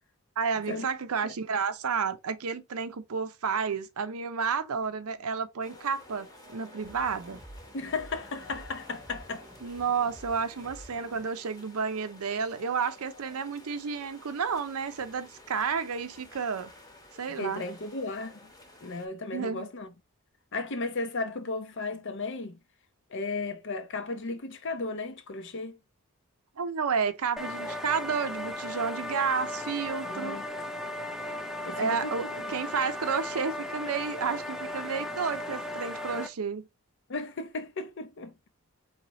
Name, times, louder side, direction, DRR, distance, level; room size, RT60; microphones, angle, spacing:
voice 1, 0.4-7.4 9.6-16.7 17.2-17.6 19.3-19.7 26.6-30.4 31.7-36.7, right 5 dB, 80° right, 0.6 m, -31 dB
sound 1, 5.6-19.1, left 1 dB, 15° left, 1.0 m, -52 dB
sound 2, 6.8-11.2, right 1 dB, 20° right, 1.0 m, -50 dB
voice 2, 7.7-9.5 17.3-18.5 18.8-19.9 20.5-22.6 23.1-25.8 30.0-30.4 31.6-32.3 37.1-38.4, left 3 dB, 55° left, 0.7 m, -35 dB
sound 3, 27.4-36.3, left 1 dB, ahead, 0.5 m, -36 dB
4.1 x 3.5 x 2.9 m
head